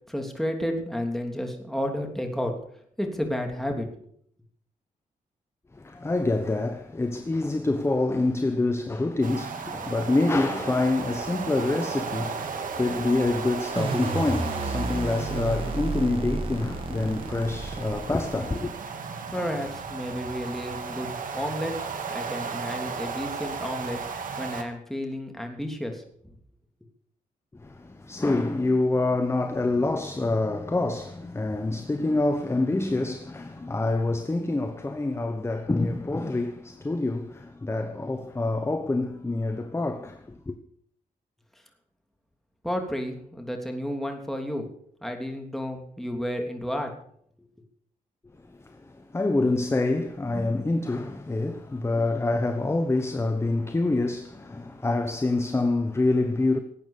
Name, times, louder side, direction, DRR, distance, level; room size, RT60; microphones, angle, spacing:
voice 1, 0.1-2.5 3.0-3.9 19.3-21.1 21.3-21.8 22.1-24.0 24.4-26.3 42.6-44.7 45.0-46.9, equal, ahead, 3.2 m, -31 dB
voice 2, 5.7-18.7 27.6-40.6 48.5-56.6, left 2 dB, 20° left, 1.1 m, -26 dB
sound 1, 9.2-24.6, right 5 dB, 70° right, 2.2 m, -35 dB
sound 2, 13.8-18.8, right 3 dB, 40° right, 2.5 m, -31 dB
18.0 x 8.8 x 6.7 m
cardioid pair, 100°, 14 cm